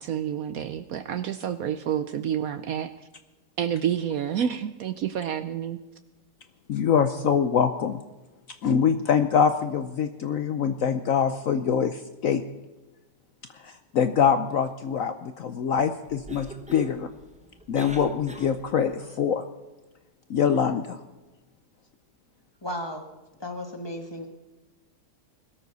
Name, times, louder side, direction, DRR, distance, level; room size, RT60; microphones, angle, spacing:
voice 1, 0.0-2.9 3.6-5.8, right 9 dB, 65° right, 12 dB, 1.0 m, -29 dB
voice 2, 6.7-8.0 8.6-12.4 13.6-17.1 17.7-19.4 20.3-21.0, left 7 dB, 65° left, 10 dB, 0.9 m, -24 dB
Cough, 16.0-18.9, right 1 dB, 5° right, 0.9 m, -43 dB
voice 3, 22.6-23.1 23.4-24.3, left 1 dB, 15° left, 4 dB, 1.8 m, -34 dB
21.0 x 13.0 x 4.0 m, 1.1 s
omnidirectional pair, 1.8 m